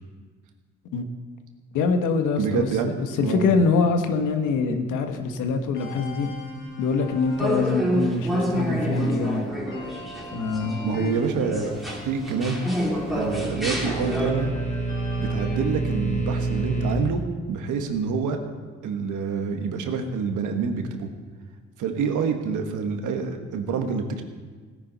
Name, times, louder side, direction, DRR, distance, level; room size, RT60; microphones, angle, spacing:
voice 1, 1.7-6.3 6.8-9.5 10.3-10.8, left 4 dB, 90° left, 6 dB, 1.2 m, -24 dB
voice 2, 2.4-2.9 3.2-3.5 10.8-11.7 12.0-12.6 13.1-14.5 15.2-17.2 17.5-18.4 18.8-21.1 21.8-24.2, right 5 dB, 80° right, 5 dB, 1.5 m, -27 dB
sound 1, 5.7-15.9, left 2 dB, 40° left, 2.8 m, -41 dB
sound 2, 7.4-14.3, equal, ahead, 2.7 m, -28 dB
sound 3, 12.4-17.0, right 3 dB, 25° left, 2.7 m, -29 dB
17.0 x 10.0 x 4.1 m, 1.5 s
cardioid pair, 90°, 30 cm